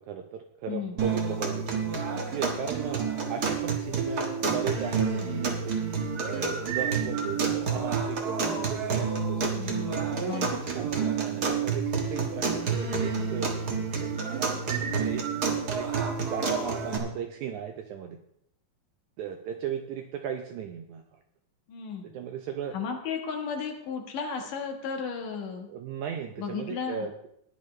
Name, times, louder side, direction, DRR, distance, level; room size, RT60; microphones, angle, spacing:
voice 1, 0.0-1.8 2.3-5.9 6.2-9.7 10.2-13.5 14.0-15.2 15.7-15.9 16.3-18.2 19.2-21.0 22.0-22.8 25.7-27.3, right 8 dB, 75° right, 5 dB, 1.8 m, -36 dB
voice 2, 0.7-1.0 9.5-10.6 21.7-22.1 22.7-25.7 26.4-27.1, left 6 dB, 70° left, 3 dB, 2.9 m, -34 dB
sound 1, 1.0-17.0, right 5 dB, 60° right, 0.9 m, -29 dB
15.0 x 10.0 x 3.2 m, 0.75 s
omnidirectional pair, 4.0 m